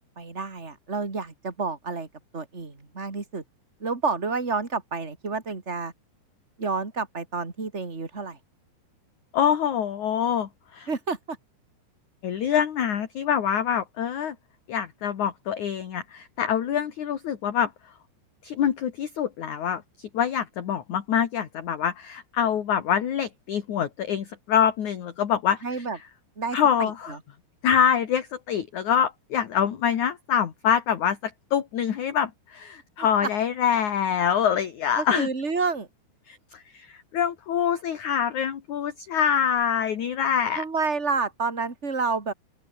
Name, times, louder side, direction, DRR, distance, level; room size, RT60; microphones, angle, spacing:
voice 1, 0.2-2.1 2.3-3.4 3.8-5.9 6.6-8.4 10.9-11.4 25.6-26.0 26.4-27.2 33.0-33.3 35.0-35.9 40.6-42.3, right 4 dB, 20° right, 2.4 m, -29 dB
voice 2, 9.3-10.9 12.2-14.4 14.7-17.7 18.4-25.9 26.5-27.2 27.6-35.3 36.3-40.6, left 8 dB, 50° left, 2.8 m, -25 dB
open air
omnidirectional pair, 5.3 m